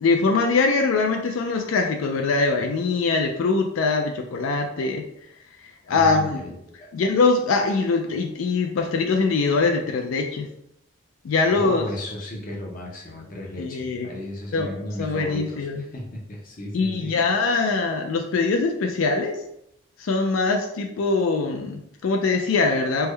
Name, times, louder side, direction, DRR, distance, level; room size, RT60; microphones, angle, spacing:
voice 1, 0.0-5.0 5.9-6.4 6.9-10.5 11.2-11.8 13.6-14.1 14.5-14.7 15.0-15.8 16.7-19.4 20.0-23.1, left 4 dB, 85° left, 3 dB, 0.4 m, -22 dB
voice 2, 5.9-6.9 11.5-17.1, left 1 dB, 45° left, -1 dB, 0.7 m, -34 dB
3.3 x 2.2 x 3.2 m, 0.77 s
head